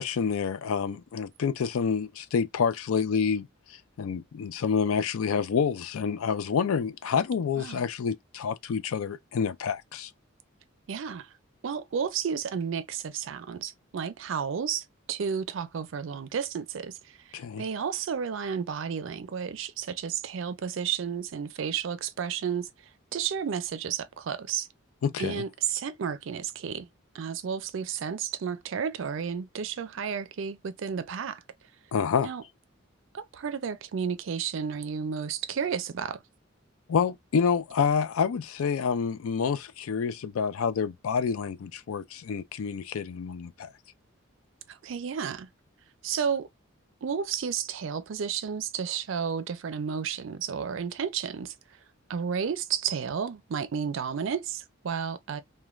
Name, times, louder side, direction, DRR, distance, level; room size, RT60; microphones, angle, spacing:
voice 1, 0.0-10.1 17.3-17.7 25.0-25.4 31.9-32.3 36.9-43.7, left 6 dB, 85° left, 0.4 m, -28 dB
voice 2, 10.9-11.3 11.6-22.7 23.1-24.7 25.2-26.9 27.1-31.4 32.2-32.4 33.1-36.2 44.7-45.5 46.0-46.5 47.0-51.5 52.1-55.4, right 7 dB, 65° right, 0.4 m, -32 dB
3.1 x 2.2 x 2.3 m
head